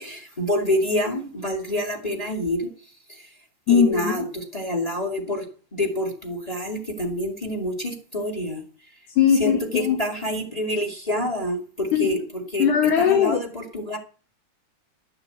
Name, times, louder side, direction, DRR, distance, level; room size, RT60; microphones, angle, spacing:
voice 1, 0.0-2.7 3.1-3.3 3.7-5.5 5.7-8.6 9.4-12.7 13.0-14.0, left 1 dB, 15° left, 3 dB, 2.2 m, -27 dB
voice 2, 3.7-4.1 9.2-10.0 11.9-12.1 12.6-13.4, left 7 dB, 80° left, 3 dB, 3.0 m, -19 dB
13.0 x 6.7 x 8.1 m, 0.39 s
omnidirectional pair, 3.4 m